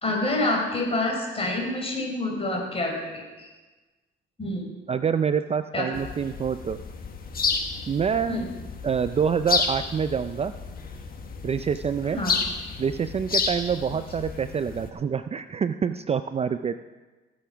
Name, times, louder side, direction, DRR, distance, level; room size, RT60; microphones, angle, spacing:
voice 1, 0.0-3.5 4.4-4.6 5.7-5.9 8.3-8.5 12.1-12.3, left 2 dB, 30° left, 0 dB, 4.4 m, -27 dB
voice 2, 4.9-6.8 7.9-8.4 8.8-10.5 11.4-12.2 12.8-16.8, right 7 dB, 30° right, 11 dB, 0.4 m, -26 dB
sound 1, 5.9-14.9, left 5 dB, 50° left, 1.5 m, -31 dB
16.0 x 7.2 x 5.7 m, 1.2 s
cardioid pair, 90°, 20 cm